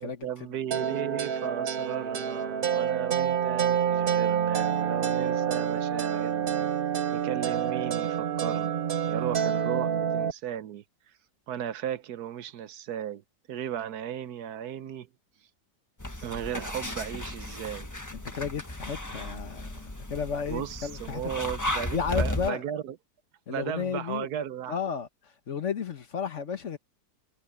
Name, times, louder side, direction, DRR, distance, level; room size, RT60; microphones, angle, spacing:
voice 1, 0.0-6.7 7.1-8.8 9.1-10.8 11.5-13.2 13.5-15.1 16.2-18.0 20.5-23.0 23.5-24.8, right 10 dB, 70° right, 1.3 m, -36 dB
sound 1, 0.7-10.3, right 8 dB, 50° right, 0.7 m, -28 dB
sound 2, 16.0-22.5, left 1 dB, 10° left, 1.4 m, -35 dB
voice 2, 18.1-21.5 21.9-22.6 23.5-24.3 24.7-25.1 25.5-26.8, left 6 dB, 50° left, 1.5 m, -33 dB
omnidirectional pair, 1.8 m